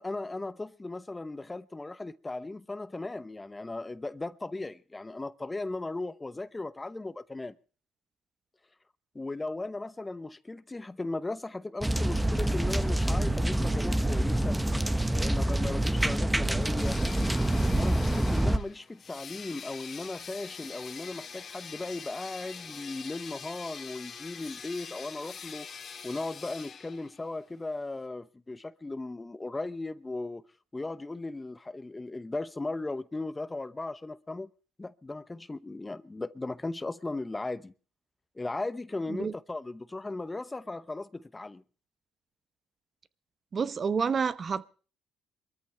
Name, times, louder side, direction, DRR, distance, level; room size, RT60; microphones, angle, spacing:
voice 1, 0.0-7.6 9.1-14.6 15.1-17.0 17.6-25.7 26.0-30.4 30.7-34.5 34.8-37.7 38.4-41.6, left 2 dB, 20° left, 0.8 m, -37 dB
sound 1, 11.8-18.6, right 1 dB, 10° right, 1.1 m, -26 dB
sound 2, 16.8-27.3, left 6 dB, 45° left, 2.2 m, -44 dB
voice 2, 43.5-44.7, right 6 dB, 40° right, 0.9 m, -29 dB
23.5 x 14.0 x 3.3 m
supercardioid pair, 80°, 0 cm